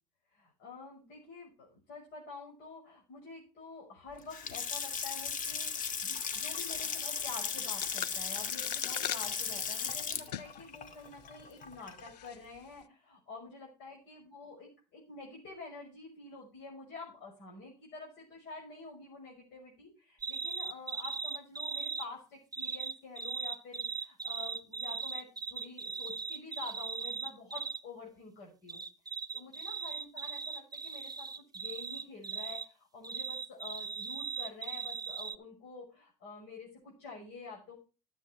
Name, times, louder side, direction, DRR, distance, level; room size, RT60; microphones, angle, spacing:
voice 1, 0.3-28.8 29.3-37.7, left 4 dB, 60° left, -2 dB, 6.0 m, -48 dB
Water tap faucet / Sink (filling or washing) / Splash splatter, 4.2-12.3, left 6 dB, 40° left, 1.8 m, -37 dB
sound 1, 7.7-10.7 11.1-11.2 12.0-12.4, left 11 dB, 90° left, 0.5 m, -41 dB
sound 2, 20.2-22.1 22.5-27.8 28.7-32.7 33.0-35.4, right 5 dB, 20° right, 1.0 m, -38 dB
13.0 x 8.4 x 4.5 m, 0.32 s
hypercardioid pair, 70°, 20 cm